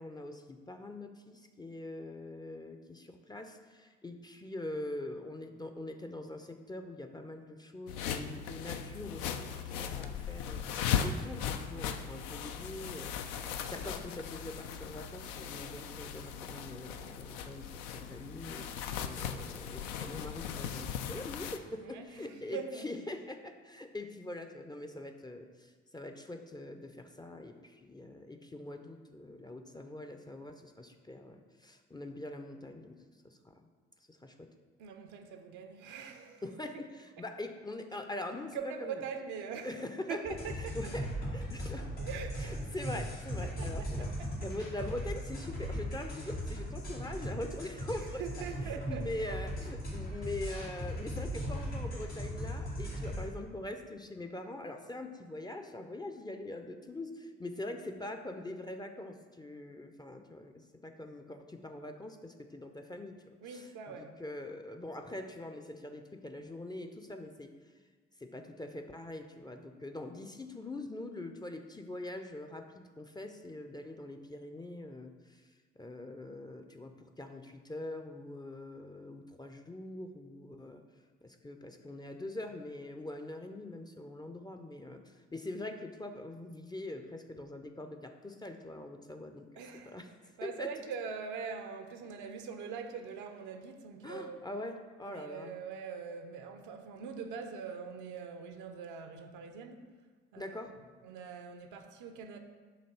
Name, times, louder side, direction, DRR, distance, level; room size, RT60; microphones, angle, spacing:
voice 1, 0.0-10.6 11.0-33.0 33.2-33.6 34.1-34.5 36.4-39.0 39.6-42.0 42.4-44.1 44.4-67.5 68.2-75.4 75.8-80.8 81.2-90.1 90.4-90.7 94.0-95.5 100.4-100.7, left 1 dB, 15° left, 5 dB, 0.5 m, -43 dB
Playing with the fabric in a satin dress, 7.9-21.6, left 7 dB, 65° left, 0.5 m, -38 dB
voice 2, 21.8-22.9 34.8-36.4 38.5-39.8 40.1-40.7 42.0-42.7 43.4-43.7 48.2-49.1 63.4-64.2 89.6-90.0 90.4-94.4 95.0-99.8 100.3-100.6 101.0-102.4, right 6 dB, 65° right, 6 dB, 0.7 m, -42 dB
sound 1, 40.2-53.3, equal, 90° left, 1.7 m, -38 dB
6.9 x 2.9 x 5.6 m, 1.5 s
figure-of-eight pair, 45°, 33 cm